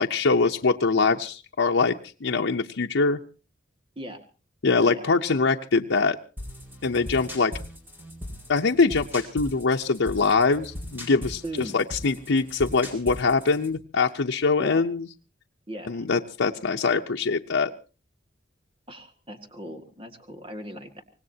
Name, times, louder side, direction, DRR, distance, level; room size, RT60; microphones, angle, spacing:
voice 1, 0.0-2.0 2.2-3.2 4.6-6.2 6.8-7.5 8.5-11.4 11.7-15.0 15.9-17.7, left 4 dB, 85° left, 1 dB, 0.7 m, -23 dB
sound 1, 6.4-13.8, left 1 dB, 10° right, 5.0 m, -39 dB
voice 2, 11.4-11.8 14.6-14.8 15.7-16.1 18.9-21.0, right 1 dB, 30° right, 6 dB, 1.8 m, -38 dB
25.0 x 19.0 x 2.8 m, 0.35 s
head